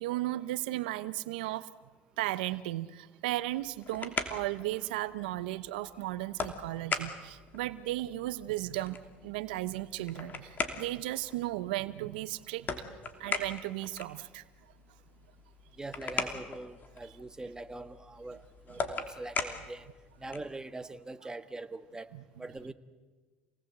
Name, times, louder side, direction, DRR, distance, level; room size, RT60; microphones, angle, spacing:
voice 1, 0.0-1.7 2.2-9.0 9.2-12.7 13.2-14.4 22.1-22.2, right 16 dB, 85° right, 15 dB, 0.8 m, -35 dB
sound 1, 3.5-20.6, left 5 dB, 35° left, 2.9 m, -40 dB
voice 2, 15.8-19.9 20.2-22.1 22.4-22.7, right 2 dB, 15° right, 10 dB, 1.5 m, -43 dB
27.5 x 19.0 x 8.1 m, 1.3 s
supercardioid pair, 85°, 5 cm